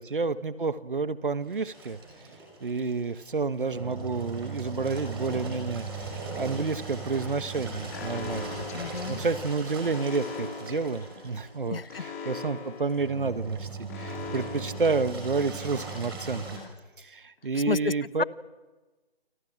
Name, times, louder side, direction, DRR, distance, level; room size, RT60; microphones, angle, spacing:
voice 1, 0.0-2.0 2.6-8.7 9.1-16.6 17.0-18.2, right 4 dB, 55° right, 14 dB, 1.5 m, -30 dB
Engine, 1.4-16.6, right 4 dB, 25° right, 5.6 m, -39 dB
Alarm, 7.9-15.7, left 4 dB, 15° left, 2.3 m, -41 dB
voice 2, 8.7-9.2 11.7-12.3 17.5-17.9 18.2-18.3, left 5 dB, 65° left, 22 dB, 0.8 m, -31 dB
29.0 x 22.0 x 8.9 m, 1.2 s
figure-of-eight pair, 165°, 31 cm